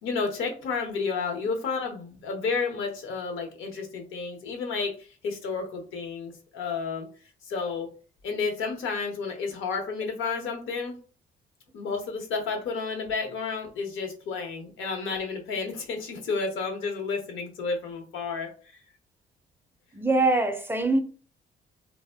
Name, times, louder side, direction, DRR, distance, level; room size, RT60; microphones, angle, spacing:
voice 1, 0.0-4.9 5.2-7.1 7.5-7.9 8.2-11.0 11.7-18.5, left 4 dB, 80° left, 0.8 m, -31 dB
voice 2, 19.9-21.0, right 2 dB, 10° right, 0.4 m, -23 dB
2.1 x 2.0 x 3.3 m
cardioid pair, 90°, 20 cm